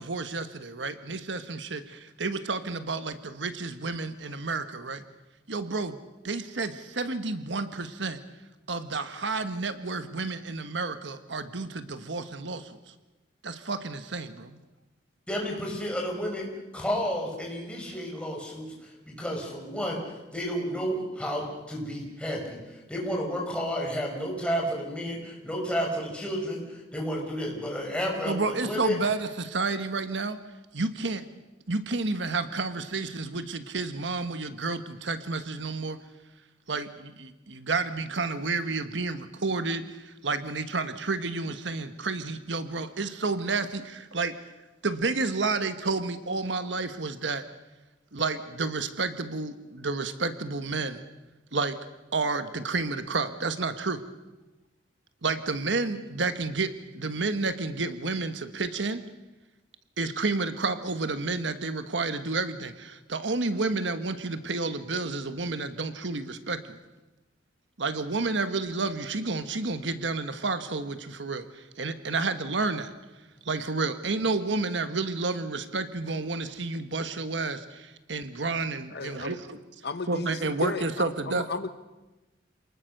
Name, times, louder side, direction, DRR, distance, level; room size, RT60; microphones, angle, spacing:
voice 1, 0.0-5.0 5.5-6.0 6.2-8.2 8.7-12.8 13.4-14.6 28.3-30.4 30.7-31.2 31.7-36.0 36.7-44.3 44.8-47.4 48.1-51.0 51.5-51.8 52.1-54.0 55.2-59.0 60.0-66.8 67.8-72.9 73.4-79.6 80.1-81.5, right 3 dB, 70° right, 10 dB, 1.4 m, -30 dB
voice 2, 15.3-20.0 20.3-29.0, equal, 5° left, 0 dB, 5.7 m, -31 dB
voice 3, 78.9-79.3 79.8-81.7, left 4 dB, 60° left, 10 dB, 1.1 m, -35 dB
28.0 x 19.5 x 6.7 m, 1.1 s
head